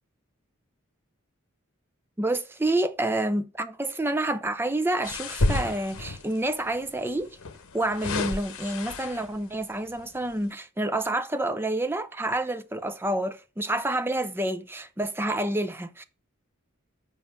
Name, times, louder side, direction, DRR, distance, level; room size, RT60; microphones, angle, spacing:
voice 1, 2.2-7.4 7.7-16.0, right 1 dB, 10° right, 0.6 m, -28 dB
sound 1, 5.0-6.4 7.4-9.4 10.0-10.2, left 2 dB, 90° left, 0.9 m, -30 dB
7.4 x 5.5 x 5.8 m
head